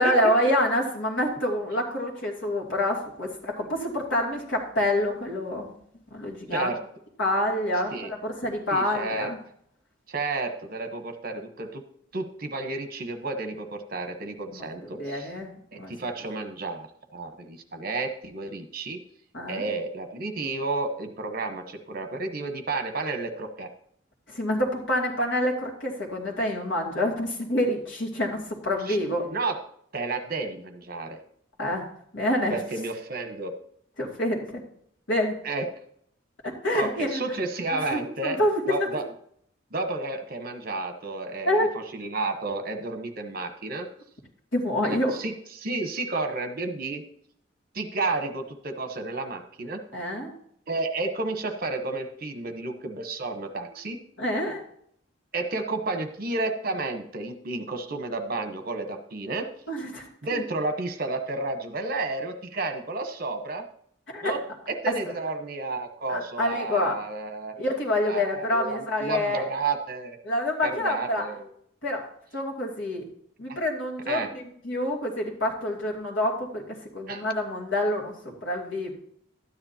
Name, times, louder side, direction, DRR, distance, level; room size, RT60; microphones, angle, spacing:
voice 1, 0.0-5.7 6.1-6.7 7.2-9.4 14.5-15.9 19.3-19.6 24.3-29.2 31.6-31.8 32.1-32.6 34.0-34.6 35.1-35.4 36.4-37.2 37.8-38.8 41.4-41.7 44.5-45.2 49.9-50.3 54.2-54.6 59.7-60.1 64.1-64.3 66.1-67.0 67.6-69.4 70.2-71.2 71.8-72.1 72.3-73.0 73.4-76.6 76.9-78.9, left 1 dB, 80° left, -1 dB, 2.6 m, -27 dB
voice 2, 8.7-9.3 10.1-11.8 12.1-15.3 15.7-19.0 19.5-23.7 28.8-29.0 29.2-29.6 29.9-31.2 32.5-33.5 35.4-35.7 36.7-38.4 38.7-39.0 39.7-41.6 41.9-43.9 44.8-47.0 47.7-49.8 50.7-54.0 55.3-59.5 60.2-63.6 64.2-64.4 64.7-67.6 68.1-70.2 70.6-71.5 73.5-73.6 74.1-74.3 77.1-77.2, right 3 dB, 50° right, 7 dB, 1.1 m, -31 dB
12.5 x 9.7 x 2.9 m, 0.67 s
head